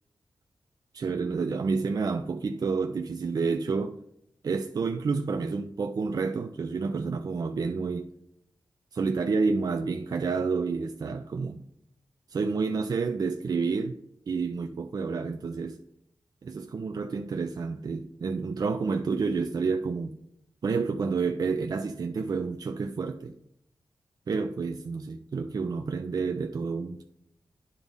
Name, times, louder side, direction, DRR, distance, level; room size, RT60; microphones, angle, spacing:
voice 1, 0.9-3.9 4.4-8.1 8.9-11.6 12.3-14.0 14.3-15.8 16.4-20.2 20.6-23.4 24.3-27.0, right 4 dB, 55° right, 0.4 m, -29 dB
9.8 x 3.5 x 4.0 m
wide cardioid pair, 85°, 8 cm